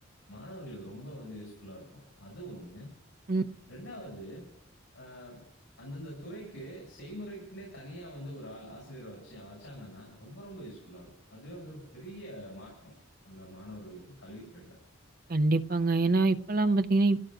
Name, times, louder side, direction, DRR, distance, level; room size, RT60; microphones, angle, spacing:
voice 1, 0.3-2.9 3.7-4.5 4.9-5.4 5.7-12.9 13.2-14.8, equal, 65° left, -3 dB, 6.6 m, -45 dB
voice 2, 15.3-17.2, right 2 dB, 45° right, 9 dB, 0.6 m, -25 dB
27.0 x 16.5 x 2.6 m, 0.70 s
head